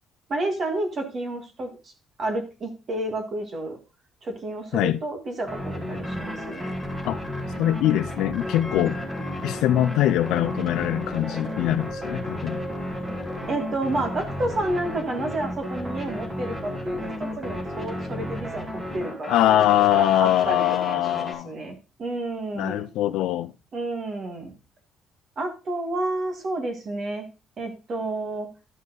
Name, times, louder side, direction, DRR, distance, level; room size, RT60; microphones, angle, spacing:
voice 1, 0.3-1.9 2.2-3.8 4.2-6.7 13.5-22.9 23.7-24.5 25.4-27.3 27.6-28.5, right 2 dB, 35° right, 1.9 m, -30 dB
sound 1, 5.4-21.3, left 1 dB, 15° right, 2.6 m, -33 dB
sound 2, 6.0-7.4 7.9-8.0 8.3-9.6 9.8-15.0, left 1 dB, 5° left, 3.4 m, -40 dB
voice 2, 7.6-9.0 9.4-12.6 19.3-21.6 22.6-23.5, left 13 dB, 90° left, 0.4 m, -22 dB
12.0 x 5.4 x 3.9 m
cardioid pair, 175°, 0 cm